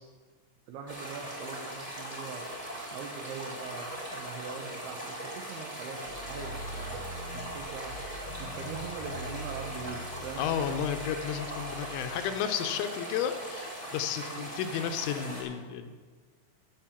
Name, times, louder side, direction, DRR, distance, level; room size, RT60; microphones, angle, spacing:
voice 1, 0.7-2.5 2.9-7.0 7.3-8.0 8.4-10.5 14.3-14.5, right 6 dB, 85° right, 3 dB, 2.2 m, -42 dB
sound 1, 0.9-15.4, equal, 15° right, 1.1 m, -40 dB
sound 2, 6.0-12.3, left 1 dB, 65° right, 5.6 m, -44 dB
voice 2, 10.4-15.9, left 8 dB, 80° left, 7 dB, 2.9 m, -32 dB
14.5 x 5.9 x 7.2 m, 1.5 s
omnidirectional pair, 5.6 m